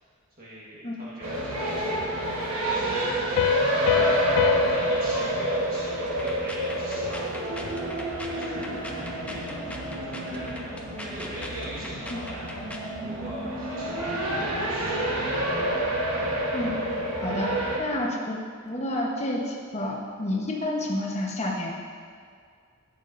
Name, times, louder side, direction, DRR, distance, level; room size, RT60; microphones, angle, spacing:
voice 1, 0.4-3.4 3.7-12.6 13.0-15.0, equal, 40° right, -7 dB, 1.4 m, -41 dB
sound 1, 1.2-17.8, right 1 dB, 80° right, 1.3 m, -28 dB
Piano, 3.4-6.8, left 8 dB, 85° left, 0.3 m, -27 dB
sound 2, 6.1-12.9, left 1 dB, 5° left, 0.6 m, -41 dB
voice 2, 17.8-18.4 18.6-21.8, left 1 dB, 30° left, -1 dB, 1.0 m, -29 dB
11.0 x 8.2 x 2.6 m, 2.2 s
head